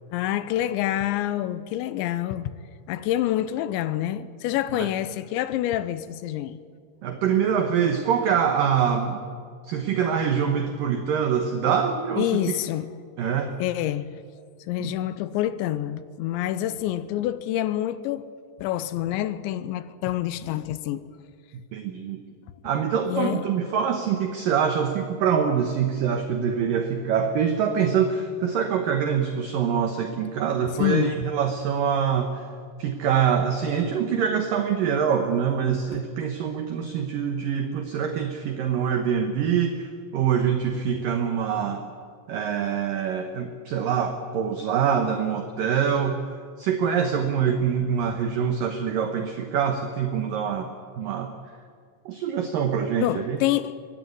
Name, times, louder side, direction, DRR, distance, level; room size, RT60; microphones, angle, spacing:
voice 1, 0.1-2.5 2.9-6.6 12.2-12.9 13.6-14.1 14.7-18.2 18.6-21.0 23.0-23.5 30.6-31.1 53.0-53.9, left 13 dB, 80° left, 3.0 m, -27 dB
voice 2, 7.0-9.2 9.6-12.6 13.2-13.5 14.8-14.9 21.7-22.2 22.6-32.4 32.8-41.8 42.3-46.3 46.6-50.7 51.0-51.3 52.1-53.4, right 7 dB, 65° right, 2.2 m, -25 dB
24.5 x 16.5 x 9.6 m
omnidirectional pair, 5.4 m